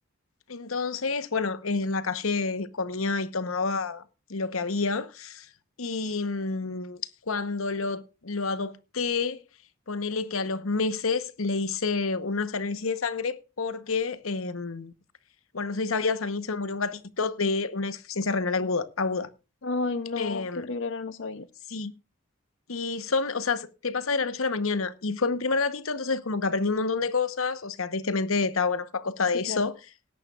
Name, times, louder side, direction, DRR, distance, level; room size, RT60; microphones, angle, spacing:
voice 1, 0.5-4.0 4.3-5.5 5.8-7.0 7.3-9.4 9.9-14.9 15.5-19.3 20.2-20.6 21.7-21.9 22.7-29.7, left 4 dB, 90° left, 1.0 m, -28 dB
voice 2, 19.6-21.5 29.5-29.7, left 3 dB, 60° left, 0.6 m, -31 dB
19.0 x 10.5 x 2.4 m
head